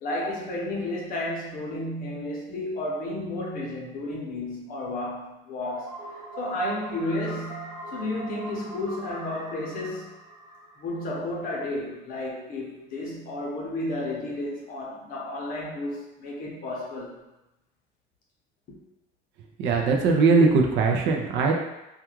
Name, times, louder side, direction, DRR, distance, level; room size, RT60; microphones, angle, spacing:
voice 1, 0.0-5.9 6.4-10.1 10.8-17.2, left 1 dB, 45° left, -3 dB, 0.7 m, -32 dB
sound 1, 5.6-11.5, right 1 dB, 15° right, 0.6 m, -42 dB
voice 2, 19.6-21.5, right 4 dB, 65° right, 1 dB, 0.4 m, -20 dB
2.3 x 2.2 x 3.0 m, 0.96 s
cardioid pair, 165°, 20 cm